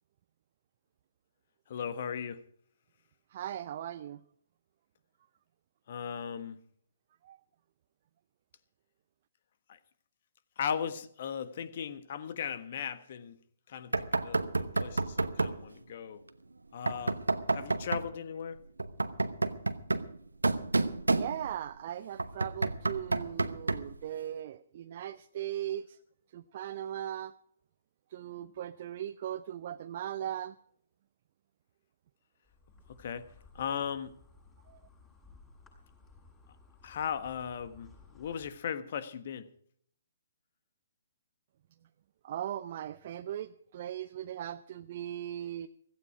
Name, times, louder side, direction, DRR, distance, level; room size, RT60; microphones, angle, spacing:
voice 1, 1.7-2.4 5.9-6.6 9.7-9.8 10.6-13.4 13.7-16.2 16.7-17.2 17.5-18.6 32.9-33.3 33.5-34.1 36.8-39.5, left 7 dB, 50° left, 1.4 m, -37 dB
voice 2, 3.3-4.2 7.2-7.4 21.1-26.0 26.3-27.3 28.1-30.5 34.7-34.8 42.2-45.7, right 11 dB, 45° right, 0.6 m, -38 dB
Knock, 13.9-15.6 16.9-18.1 18.8-21.7 22.2-24.0, right 3 dB, 80° right, 1.0 m, -30 dB
Insect, 32.4-38.5, left 3 dB, 15° left, 6.8 m, -58 dB
16.0 x 15.0 x 4.8 m
figure-of-eight pair, 130°, 0 cm